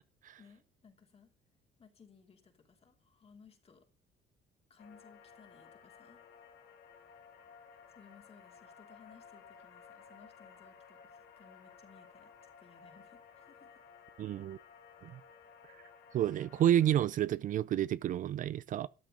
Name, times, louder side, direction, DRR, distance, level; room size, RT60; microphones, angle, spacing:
voice 1, 0.4-1.3 1.8-3.9 4.7-6.3 7.9-13.8, left 5 dB, 35° left, 2.8 m, -61 dB
sound 1, 4.8-17.1, left 6 dB, 80° left, 2.2 m, -57 dB
voice 2, 14.2-14.6 15.0-15.2 16.1-18.9, right 11 dB, 50° right, 0.4 m, -30 dB
13.0 x 8.9 x 3.8 m
cardioid pair, 110°, 17 cm